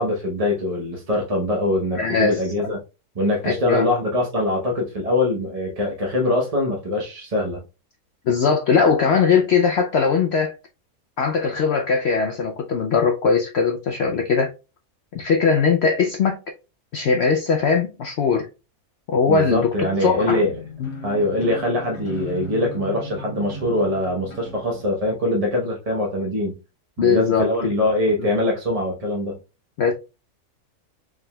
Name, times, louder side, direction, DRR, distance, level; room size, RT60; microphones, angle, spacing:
voice 1, 0.0-2.8 3.1-7.6 19.3-20.5 21.0-26.6 27.0-29.4, left 1 dB, 30° right, 0.8 m, -23 dB
voice 2, 2.0-2.4 3.4-3.9 8.3-10.5 11.2-14.5 15.1-16.4 16.9-18.5 19.1-19.7 20.0-20.4 20.8-20.9 27.0-27.5 28.2-28.3 29.8-29.9, left 5 dB, 70° left, 0.6 m, -20 dB
sound 1, 20.2-24.8, left 1 dB, 50° left, 1.3 m, -36 dB
4.7 x 3.7 x 2.2 m
omnidirectional pair, 1.6 m